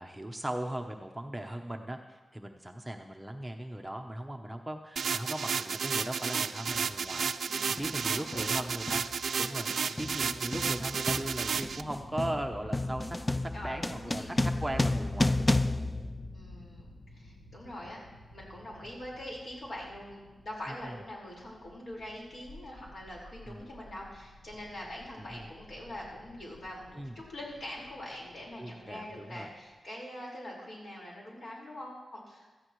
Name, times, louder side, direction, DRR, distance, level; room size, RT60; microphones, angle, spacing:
voice 1, 0.0-9.0 9.4-15.8 20.7-21.0 23.5-23.6 25.3-25.4 26.9-27.2 28.6-29.5, right 1 dB, 10° right, 3 dB, 0.8 m, -39 dB
sound 1, 5.0-11.8, right 6 dB, 75° right, 0.4 m, -32 dB
sound 2, 6.7-6.9 7.8-8.0 8.3-16.9, left 2 dB, 20° left, 0.4 m, -32 dB
voice 2, 7.5-7.9 8.1-8.5 13.5-14.4 16.3-18.0 18.3-32.5, left 1 dB, 55° left, -3 dB, 4.7 m, -43 dB
sound 3, 11.5-29.8, left 1 dB, 75° left, 1.4 m, -52 dB
16.5 x 13.5 x 3.1 m, 1.2 s
wide cardioid pair, 95°, 0 cm